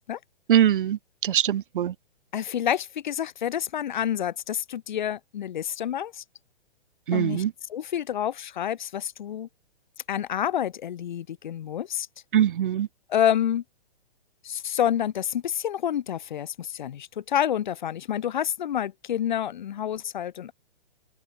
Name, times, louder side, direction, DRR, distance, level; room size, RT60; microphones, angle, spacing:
voice 1, 0.5-1.9 7.1-7.5 12.3-12.9, right 10 dB, 55° right, 0.5 m, -22 dB
voice 2, 2.3-6.2 7.1-7.4 7.7-9.5 10.1-12.1 13.1-13.6 14.4-20.5, left 10 dB, 50° left, 1.0 m, -28 dB
open air
hypercardioid pair, 170°, 31 cm